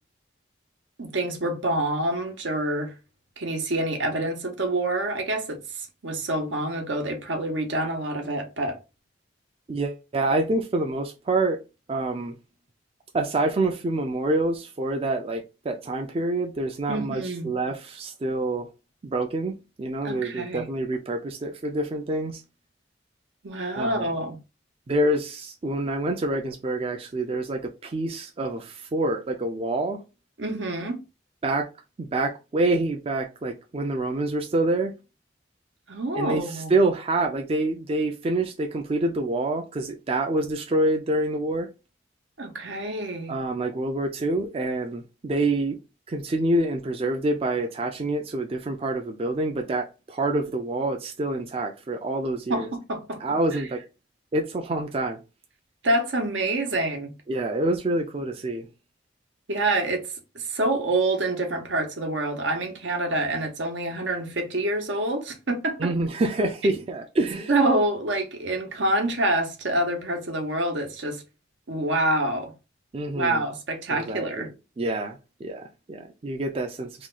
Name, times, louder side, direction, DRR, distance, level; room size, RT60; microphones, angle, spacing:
voice 1, 1.0-2.9 3.4-8.8 16.9-17.5 20.0-20.6 23.4-24.4 30.4-31.0 35.9-36.7 42.4-43.4 52.5-53.2 53.5-53.6 55.8-57.1 59.5-60.1 60.3-65.9 67.5-71.2 71.7-72.5 73.1-74.5, right 2 dB, 85° right, 0.9 m, -27 dB
voice 2, 9.7-11.6 11.9-12.4 13.1-18.7 19.0-22.4 23.7-24.1 24.9-30.0 31.4-31.7 32.0-34.9 36.1-41.7 43.3-45.8 46.1-52.7 53.2-53.8 54.3-55.2 57.3-58.7 65.8-67.5 72.9-73.4 73.9-74.5 74.8-77.1, right 2 dB, 30° right, 0.4 m, -27 dB
3.0 x 2.3 x 3.7 m
head